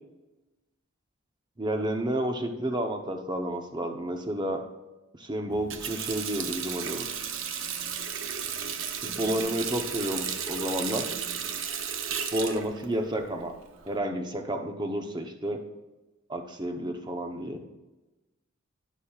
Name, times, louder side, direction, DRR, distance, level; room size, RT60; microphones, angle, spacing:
voice 1, 1.6-4.6 5.2-7.1 9.0-11.2 12.3-13.5 13.9-15.6 16.3-17.6, right 1 dB, 20° right, 4 dB, 0.8 m, -31 dB
Water tap faucet, 5.5-14.0, right 7 dB, 65° right, 0.7 m, -34 dB
11.5 x 9.2 x 2.4 m, 1.1 s
head